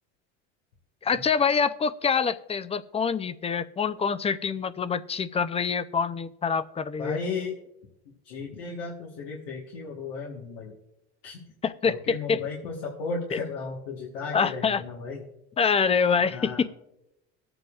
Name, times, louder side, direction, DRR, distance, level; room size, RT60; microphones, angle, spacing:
voice 1, 1.0-7.2 11.6-12.4 13.3-13.4 14.3-14.8 15.6-16.7, left 6 dB, 20° left, 14 dB, 0.5 m, -26 dB
voice 2, 7.0-7.6 8.2-10.7 11.2-11.4 11.8-15.2 16.3-16.6, left 4 dB, 90° left, -2 dB, 1.4 m, -35 dB
22.0 x 7.9 x 2.4 m, 0.88 s
supercardioid pair, 100°, 32 cm